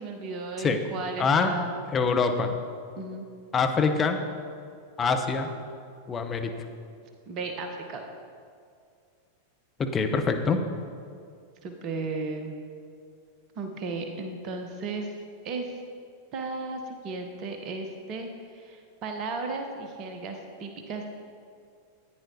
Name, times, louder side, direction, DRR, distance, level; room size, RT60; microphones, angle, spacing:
voice 1, 0.0-1.7 3.0-3.3 7.3-8.0 11.6-12.6 13.6-15.2 15.4-15.8 16.3-21.1, right 3 dB, 35° right, 4 dB, 1.0 m, -35 dB
voice 2, 1.2-1.5 1.9-2.5 3.5-4.2 5.0-5.5 6.1-6.5 9.8-10.6, left 5 dB, 20° left, 4 dB, 0.8 m, -24 dB
14.0 x 9.4 x 2.8 m, 2.2 s
figure-of-eight pair, 90°, 0 cm